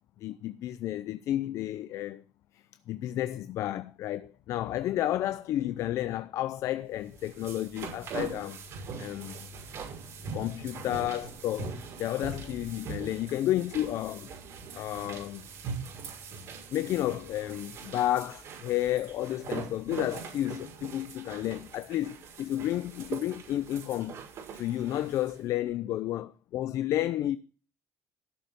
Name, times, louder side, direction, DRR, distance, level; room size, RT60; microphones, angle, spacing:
voice 1, 0.2-2.2 2.5-8.6 9.0-9.4 10.3-14.3 14.7-15.5 16.7-24.1 24.5-27.4, left 13 dB, 55° left, 0.6 m, -31 dB
sound 1, 7.0-25.4, right 5 dB, 50° right, 5.8 m, -42 dB
15.0 x 6.7 x 6.8 m
cardioid pair, 150°, 6 cm